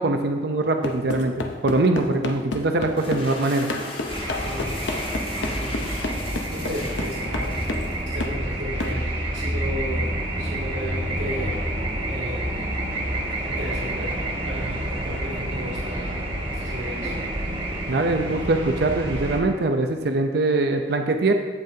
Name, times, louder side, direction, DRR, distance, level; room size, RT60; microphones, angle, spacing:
voice 1, 0.0-1.3 1.6-3.7 17.9-21.3, right 2 dB, 60° right, 5 dB, 0.6 m, -22 dB
sound 1, 0.8-3.3 3.7-7.9 8.2-8.4 8.8-9.0, left 2 dB, 85° left, 0.8 m, -30 dB
sound 2, 2.8-8.4, left 2 dB, 30° left, 1.0 m, -38 dB
sound 3, 4.1-19.4, right 1 dB, 30° right, 1.4 m, -28 dB
voice 2, 4.4-4.8 5.5-5.8 6.5-7.8 8.1-11.6 12.1-12.9 13.4-16.2 16.5-17.1 18.1-18.3, equal, 85° right, -6 dB, 2.6 m, -35 dB
15.0 x 5.3 x 2.8 m, 1.5 s
head